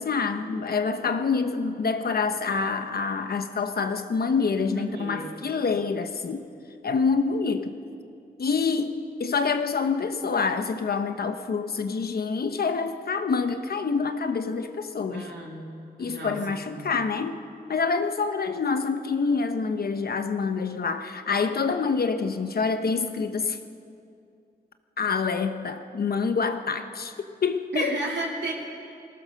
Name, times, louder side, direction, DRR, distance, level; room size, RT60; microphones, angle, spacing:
voice 1, 0.0-6.5 6.8-7.7 8.4-15.3 16.0-17.4 17.7-23.6 25.0-27.1 27.4-28.0, left 5 dB, 60° left, 8 dB, 1.1 m, -26 dB
voice 2, 4.7-5.5 15.1-15.7 16.0-16.9 27.7-28.5, right 2 dB, 85° right, -3 dB, 3.0 m, -33 dB
22.0 x 19.0 x 6.5 m, 2.5 s
wide cardioid pair, 155°, 18 cm